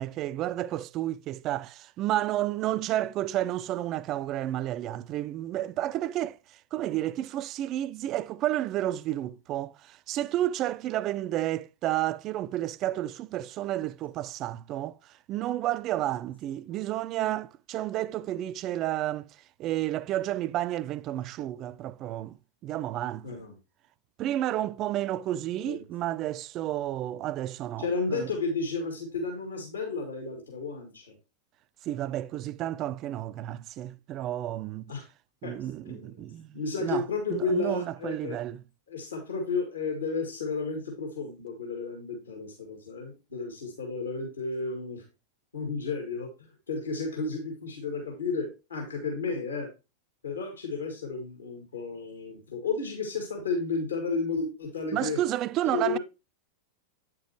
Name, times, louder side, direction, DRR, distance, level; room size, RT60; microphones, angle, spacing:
voice 1, 0.0-6.4 6.7-15.0 15.3-19.3 19.6-22.4 22.6-23.3 24.2-28.3 31.9-34.9 35.4-38.6 54.9-56.0, right 13 dB, 35° right, 0.3 m, -31 dB
voice 2, 23.2-23.5 25.6-25.8 27.8-31.1 34.9-35.0 35.4-35.6 35.9-36.1 36.5-38.4 38.9-45.0 45.5-46.3 46.7-49.7 50.2-55.2 55.6-56.0, left 4 dB, 75° left, 2.0 m, -32 dB
8.7 x 6.0 x 3.0 m
figure-of-eight pair, 90°, 0 cm